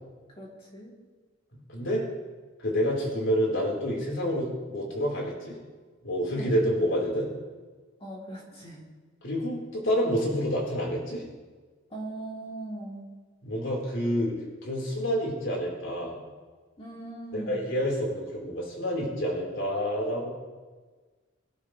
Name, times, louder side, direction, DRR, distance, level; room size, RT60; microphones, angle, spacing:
voice 1, 0.3-0.9 6.3-6.5 8.0-8.8 11.9-13.1 16.8-17.6, right 2 dB, 30° left, -4 dB, 3.3 m, -40 dB
voice 2, 1.7-2.0 2.6-5.6 6.0-7.3 9.2-11.2 13.4-14.4 14.6-16.2 17.3-20.3, equal, 75° left, -3 dB, 4.4 m, -28 dB
24.0 x 12.0 x 3.3 m, 1.4 s
head